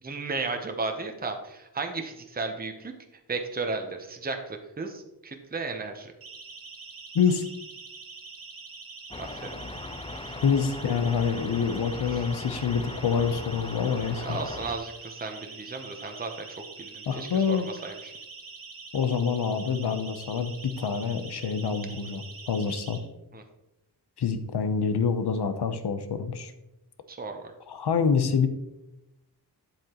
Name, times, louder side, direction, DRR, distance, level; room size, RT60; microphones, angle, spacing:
voice 1, 0.0-2.9 3.3-6.1 9.2-9.5 12.1-12.2 14.2-16.5 16.8-18.1 23.3-23.4 27.1-27.5, right 3 dB, 25° right, 5 dB, 0.8 m, -34 dB
Siren, 6.2-23.0, right 4 dB, 60° right, 1.5 m, -44 dB
sound 1, 9.1-14.8, left 2 dB, 15° left, 0.4 m, -39 dB
voice 2, 10.4-14.4 17.1-17.7 18.9-23.0 24.2-26.5 27.7-28.5, left 6 dB, 75° left, 9 dB, 0.9 m, -26 dB
8.8 x 7.7 x 3.0 m, 0.93 s
wide cardioid pair, 105°, 40 cm